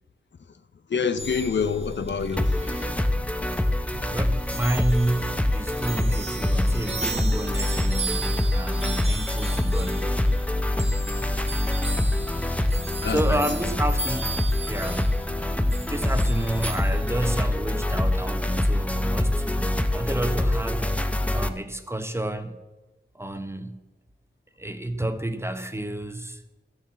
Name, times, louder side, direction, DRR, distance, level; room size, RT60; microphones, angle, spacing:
voice 1, 0.9-2.5 13.0-13.4, left 5 dB, 65° left, 0.8 m, -26 dB
sound 1, 1.2-17.5, right 2 dB, 30° right, 1.6 m, -36 dB
sound 2, 2.4-21.5, left 1 dB, 5° left, 0.8 m, -25 dB
voice 2, 4.1-10.1 13.1-15.2 15.9-21.0 21.3-22.6 23.1-23.8 24.6-26.4, right 1 dB, 15° right, 1.1 m, -30 dB
13.0 x 7.4 x 7.3 m
wide cardioid pair, 60°, 20 cm